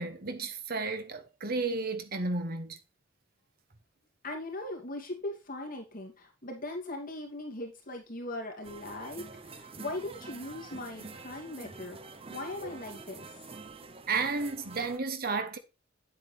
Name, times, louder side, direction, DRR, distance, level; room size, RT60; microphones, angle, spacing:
voice 1, 0.0-2.8 14.1-15.6, right 3 dB, 50° right, 1.5 m, -32 dB
voice 2, 4.2-12.0 12.3-13.3, left 2 dB, 45° left, 2.7 m, -39 dB
sound 1, 8.6-15.0, right 4 dB, 30° right, 0.9 m, -47 dB
9.4 x 8.4 x 3.4 m
head